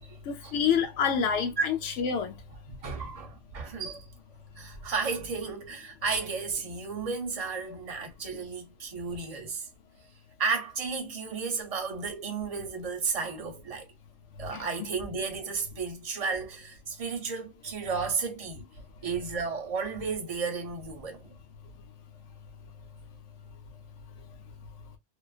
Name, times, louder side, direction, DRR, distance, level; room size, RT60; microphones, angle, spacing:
voice 1, 0.3-2.4 8.3-8.4 14.5-14.9, left 7 dB, 85° left, 0.9 m, -28 dB
voice 2, 2.7-4.1 4.6-9.7 10.4-13.9 14.4-18.6 19.0-21.3, right 5 dB, 40° right, 0.7 m, -33 dB
2.4 x 2.2 x 2.3 m
omnidirectional pair, 1.2 m